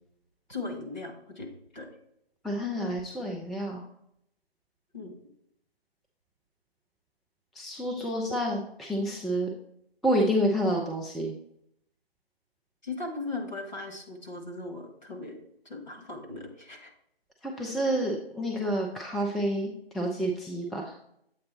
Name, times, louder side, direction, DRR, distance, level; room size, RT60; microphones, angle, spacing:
voice 1, 0.5-1.5 1.7-1.9 4.9-5.1 12.8-15.4 15.6-16.9 17.6-17.7, left 3 dB, 45° left, 2 dB, 1.4 m, -38 dB
voice 2, 2.4-3.8 7.6-9.5 10.0-11.3 17.4-20.9, equal, ahead, -1 dB, 0.3 m, -29 dB
7.6 x 4.0 x 4.1 m, 0.74 s
figure-of-eight pair, 170°, 31 cm